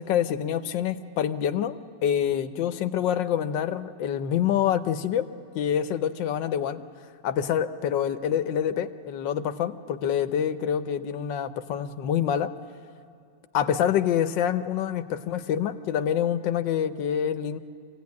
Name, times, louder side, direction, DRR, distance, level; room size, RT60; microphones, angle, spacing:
voice 1, 0.0-5.3 5.5-6.8 7.2-12.5 13.5-17.6, left 9 dB, 80° left, 9 dB, 1.5 m, -26 dB
25.0 x 16.5 x 9.5 m, 2.6 s
omnidirectional pair, 2.0 m